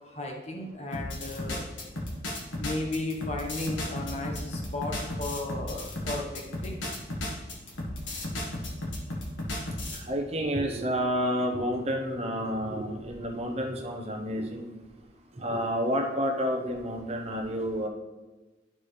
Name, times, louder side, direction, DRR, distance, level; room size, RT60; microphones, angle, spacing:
voice 1, 0.0-1.7 2.6-6.8, left 2 dB, 35° left, 0 dB, 1.0 m, -35 dB
sound 1, 0.9-10.0, left 1 dB, 85° left, 1.5 m, -34 dB
voice 2, 9.9-14.7 15.3-17.9, equal, 35° right, 1 dB, 0.9 m, -30 dB
12.0 x 4.2 x 3.3 m, 1.2 s
head